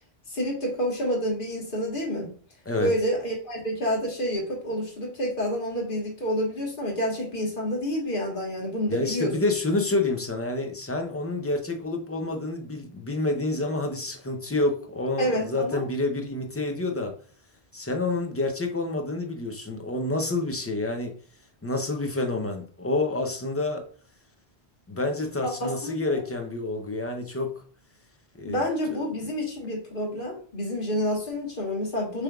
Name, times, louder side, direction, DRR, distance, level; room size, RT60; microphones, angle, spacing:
voice 1, 0.3-2.3 2.8-9.3 15.2-15.8 25.4-26.2 28.4-32.2, equal, 55° left, 1.6 m, -28 dB
voice 2, 8.9-17.1 17.7-21.1 21.6-23.9 24.9-27.6 28.4-28.6 28.9-29.0, left 2 dB, 20° left, 0.5 m, -28 dB
6.6 x 3.4 x 2.3 m
omnidirectional pair, 1.1 m